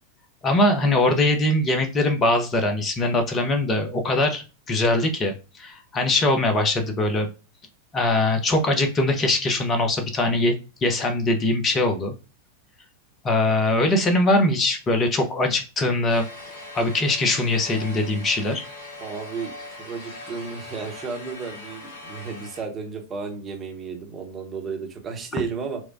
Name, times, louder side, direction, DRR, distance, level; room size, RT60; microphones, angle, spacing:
voice 1, 0.4-7.3 7.9-12.1 13.2-16.3 16.7-18.6, left 2 dB, 25° left, 5 dB, 0.8 m, -22 dB
sound 1, 16.1-22.6, left 2 dB, 55° left, 2.0 m, -40 dB
voice 2, 19.0-19.5 19.8-25.8, right 5 dB, 25° right, 2 dB, 1.0 m, -33 dB
4.5 x 2.2 x 2.6 m, 0.32 s
figure-of-eight pair, 90°, 0 cm